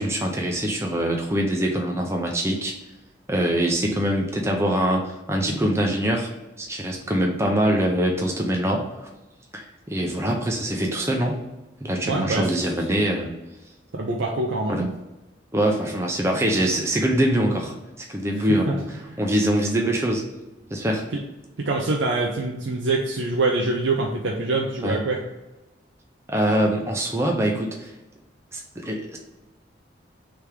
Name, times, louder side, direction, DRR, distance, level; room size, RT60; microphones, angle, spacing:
voice 1, 0.0-2.7 3.3-6.3 6.6-8.9 9.5-11.4 11.8-13.3 14.7-14.8 15.5-20.3 20.7-21.0 24.8-25.0 26.3-27.9 28.5-29.2, right 1 dB, 15° right, 0 dB, 0.5 m, -24 dB
voice 2, 12.1-12.5 13.9-14.9 18.4-18.8 19.1-19.2 21.1-21.2 21.6-25.2, right 2 dB, 70° right, 0 dB, 0.6 m, -25 dB
3.4 x 3.4 x 4.5 m, 1.0 s
head